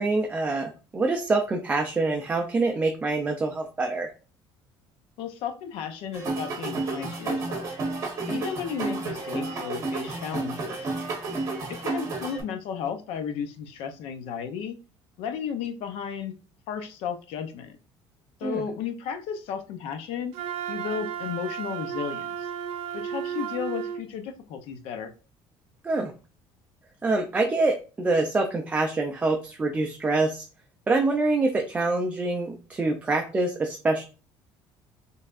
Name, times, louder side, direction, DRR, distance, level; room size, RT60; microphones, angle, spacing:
voice 1, 0.0-4.1 18.4-18.6 25.8-26.1 27.0-30.4 30.9-34.0, right 3 dB, 15° right, 2 dB, 0.4 m, -25 dB
voice 2, 5.2-7.7 8.3-10.9 11.8-14.8 15.2-16.3 16.7-17.8 18.4-20.3 20.7-22.5 22.9-25.1, left 7 dB, 75° left, 8 dB, 0.7 m, -34 dB
sound 1, 6.1-12.4, right 3 dB, 30° right, 1.3 m, -31 dB
Wind instrument woodwind instrument, 20.3-24.0, right 8 dB, 75° right, 0.5 m, -33 dB
4.3 x 3.3 x 2.5 m, 0.35 s
cardioid pair, 165°, 10 cm